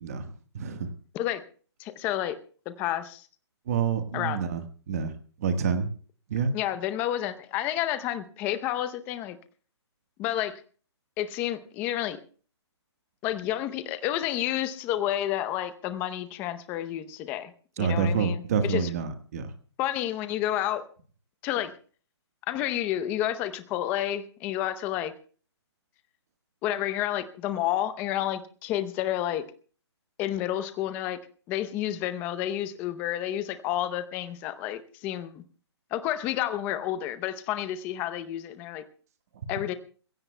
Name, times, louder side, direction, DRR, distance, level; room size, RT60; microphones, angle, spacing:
voice 1, 0.0-0.9 3.7-4.6 4.9-5.1 5.4-5.9 6.3-6.5 17.8-19.5, right 6 dB, 35° right, 8 dB, 1.4 m, -27 dB
voice 2, 1.8-2.4 2.7-3.3 4.1-4.4 6.5-9.4 10.2-10.6 11.2-12.2 13.2-17.5 17.8-18.9 19.8-20.9 21.4-21.7 22.5-25.1 26.6-29.4 30.2-31.2 31.5-35.4 35.9-38.8 39.5-39.7, left 12 dB, 15° left, 12 dB, 0.7 m, -30 dB
27.5 x 16.0 x 2.2 m, 0.41 s
hypercardioid pair, 170°, 15 cm